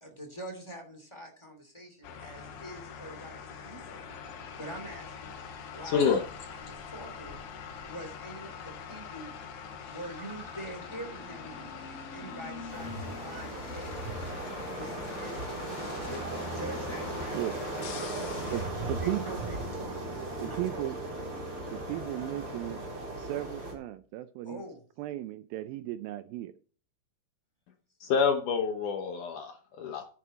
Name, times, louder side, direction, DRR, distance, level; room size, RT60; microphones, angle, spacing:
voice 1, 0.0-4.0 4.6-5.4 5.7-7.4 7.8-9.3 9.8-11.7 12.1-14.0 14.7-18.6 19.0-20.0 20.2-21.0 24.4-24.8, equal, 10° left, 2.2 m, -45 dB
sound 1, 2.0-18.7, left 6 dB, 85° left, 3.4 m, -44 dB
voice 2, 5.8-6.2 28.0-30.1, left 6 dB, 65° left, 2.2 m, -27 dB
sound 2, 9.8-19.3, left 2 dB, 25° left, 2.9 m, -47 dB
sound 3, 12.7-23.7, right 2 dB, 35° right, 4.3 m, -37 dB
voice 3, 18.5-19.4 20.4-21.0 21.7-22.8 23.2-24.6 25.0-26.5, right 14 dB, 80° right, 2.2 m, -36 dB
10.5 x 9.2 x 4.3 m
omnidirectional pair, 4.5 m